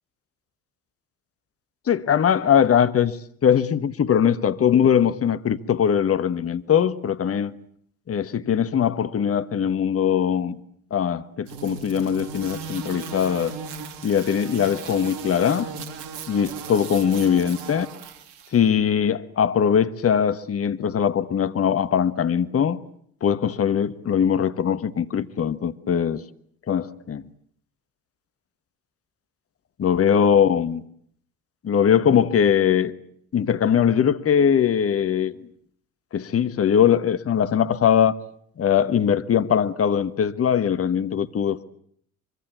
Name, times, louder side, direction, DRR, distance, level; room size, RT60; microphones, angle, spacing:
voice 1, 1.9-3.2 3.4-7.5 8.1-10.6 10.9-13.6 14.0-15.7 16.3-17.9 18.5-22.8 23.2-26.2 26.7-27.2 29.8-30.8 31.6-32.9 33.3-35.5 36.1-38.1 38.6-41.6, left 8 dB, 30° left, 1.4 m, -21 dB
sound 1, 11.5-18.6, right 6 dB, 60° right, 3.3 m, -36 dB
24.5 x 24.0 x 8.3 m
figure-of-eight pair, 60°, 45 cm